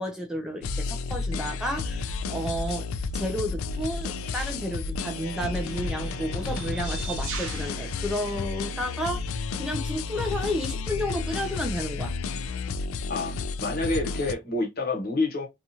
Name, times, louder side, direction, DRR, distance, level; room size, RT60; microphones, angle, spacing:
voice 1, 0.0-2.9 3.1-12.1, equal, 5° right, 0.3 m, -32 dB
sound 1, 0.6-14.3, left 4 dB, 80° left, 0.3 m, -32 dB
sound 2, 3.7-3.9 4.9-9.1, right 8 dB, 70° right, 0.6 m, -43 dB
voice 2, 13.6-15.5, left 2 dB, 45° left, 0.8 m, -28 dB
2.8 x 2.3 x 2.7 m
head